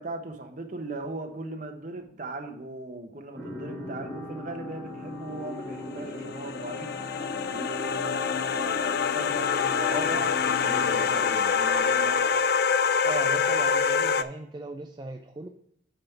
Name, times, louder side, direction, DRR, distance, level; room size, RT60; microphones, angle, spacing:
voice 1, 0.0-6.9 7.5-12.2, right 2 dB, 45° right, 4 dB, 1.0 m, -38 dB
sound 1, 3.4-11.2, left 2 dB, 5° left, 1.8 m, -39 dB
sound 2, 5.8-14.2, left 6 dB, 55° left, 0.4 m, -26 dB
voice 2, 13.0-15.5, right 2 dB, 25° right, 4 dB, 0.4 m, -37 dB
8.8 x 3.6 x 5.7 m, 0.69 s
head